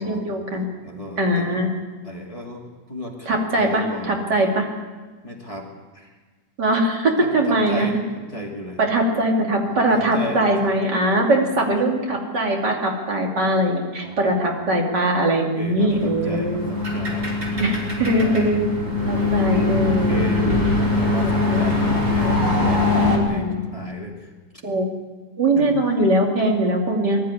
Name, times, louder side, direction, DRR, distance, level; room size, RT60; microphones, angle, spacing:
voice 1, 0.0-0.7 1.2-1.7 3.3-4.7 6.6-7.9 8.8-16.8 17.6-18.6 19.1-20.3 21.2-21.6 23.0-23.6 24.6-24.9 25.4-27.2, right 1 dB, 70° right, 0 dB, 3.3 m, -21 dB
voice 2, 0.8-1.5 2.0-4.4 5.2-6.1 7.2-8.0 8.3-8.8 9.6-10.7 11.5-11.7 14.0-14.8 15.6-17.4 18.2-18.6 19.9-24.3 25.6-25.7, left 1 dB, 20° left, -1 dB, 2.6 m, -34 dB
sound 1, 15.9-23.2, left 2 dB, 30° right, 3.6 m, -22 dB
20.0 x 13.0 x 9.7 m, 1.3 s
omnidirectional pair, 1.9 m